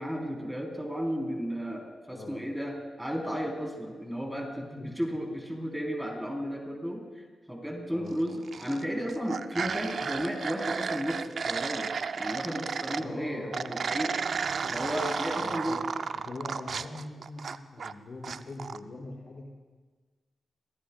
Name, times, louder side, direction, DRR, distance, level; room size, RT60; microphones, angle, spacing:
voice 1, 0.0-14.3 14.7-15.8, equal, 5° right, 0 dB, 3.9 m, -34 dB
voice 2, 2.1-2.4 4.5-5.1 7.9-8.2 13.0-13.7 14.5-14.8 15.3-15.8 16.1-19.4, left 2 dB, 55° left, -2 dB, 5.6 m, -42 dB
sound 1, 8.3-8.8 9.1-13.1 13.5-17.9 18.2-18.8, right 5 dB, 65° right, 0.5 m, -33 dB
28.5 x 17.5 x 2.4 m, 1.4 s
supercardioid pair, 50°, 0 cm